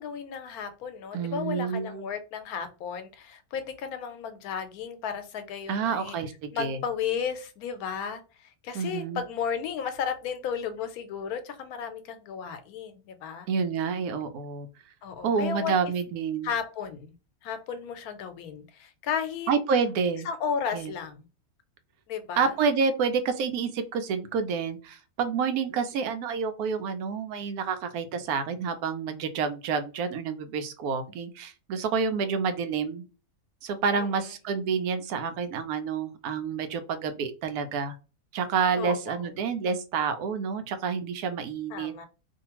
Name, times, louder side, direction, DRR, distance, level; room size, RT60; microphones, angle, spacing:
voice 1, 0.0-6.2 6.5-13.5 15.0-15.7 16.4-17.1 17.4-19.5 20.2-21.2 22.1-22.5 33.9-34.1 38.8-39.3 41.7-42.1, left 7 dB, 85° left, 9 dB, 1.1 m, -34 dB
voice 2, 1.1-2.1 5.7-6.8 8.7-9.2 13.5-14.7 15.2-16.5 19.5-20.3 20.7-20.9 22.4-33.1 33.6-38.0 38.3-41.9, right 5 dB, 85° right, 9 dB, 1.1 m, -28 dB
2.7 x 2.4 x 2.9 m, 0.32 s
omnidirectional pair, 1.5 m